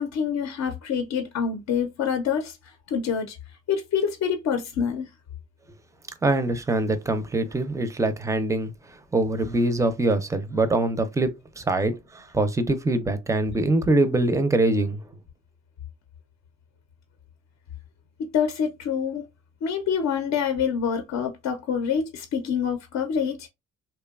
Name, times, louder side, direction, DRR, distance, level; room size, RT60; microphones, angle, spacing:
voice 1, 0.0-3.4 3.7-5.1 18.2-19.2 19.6-23.5, left 7 dB, 65° left, 0.5 m, -26 dB
voice 2, 6.2-15.0, right 2 dB, 10° right, 0.4 m, -24 dB
2.8 x 2.2 x 2.3 m
cardioid pair, 90°, 30 cm